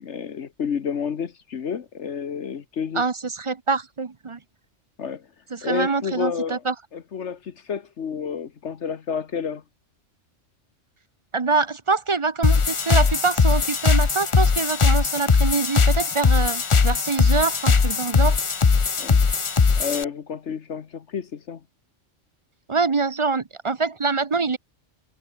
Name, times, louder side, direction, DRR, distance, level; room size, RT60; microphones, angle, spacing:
voice 1, 0.0-3.0 5.0-5.2 5.6-6.6 6.9-9.6 19.0-19.2 19.8-21.6, left 7 dB, 70° left, 1.4 m, -30 dB
voice 2, 2.9-4.4 5.5-6.7 11.3-18.4 22.7-24.6, right 4 dB, 30° right, 0.7 m, -25 dB
sound 1, 12.4-20.0, left 5 dB, 30° left, 0.7 m, -19 dB
omnidirectional pair, 1.3 m